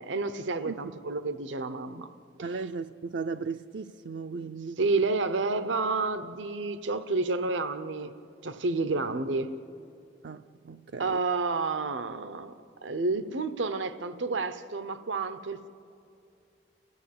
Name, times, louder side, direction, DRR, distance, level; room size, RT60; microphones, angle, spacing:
voice 1, 0.0-2.1 4.8-8.1 8.4-9.5 11.0-15.7, right 3 dB, 90° right, 0.8 m, -30 dB
voice 2, 2.4-4.8 8.8-9.0 10.2-11.2, right 4 dB, 65° right, 0.4 m, -37 dB
29.0 x 15.0 x 8.6 m
head